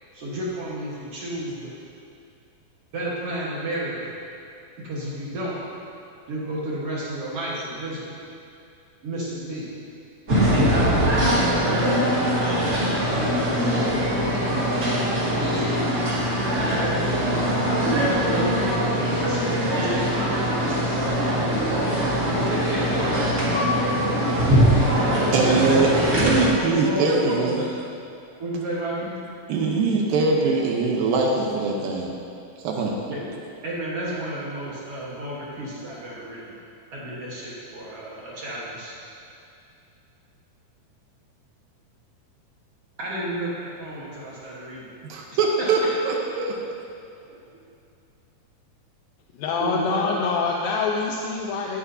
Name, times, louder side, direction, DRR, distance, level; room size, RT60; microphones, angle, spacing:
voice 1, 0.1-1.7 2.9-4.1 4.8-5.6 6.3-8.2 9.0-9.7 10.6-12.1 12.8-13.9 14.3-15.6 17.8-18.8 19.2-21.3 22.5-23.0 25.2-27.7 28.4-29.2 33.1-33.3 33.6-36.5 36.9-39.0 43.0-44.9 49.6-50.0, right 1 dB, 55° right, -6 dB, 1.8 m, -32 dB
sound 1, 10.3-26.5, equal, 35° right, 1.6 m, -22 dB
voice 2, 25.3-25.9 26.2-27.6 29.5-32.1 32.6-32.9 45.1-45.8 46.1-46.6, right 3 dB, 75° right, 0 dB, 2.6 m, -22 dB
voice 3, 49.4-51.8, left 4 dB, 80° left, 0 dB, 2.3 m, -25 dB
17.0 x 8.4 x 2.7 m, 2.5 s
omnidirectional pair, 4.3 m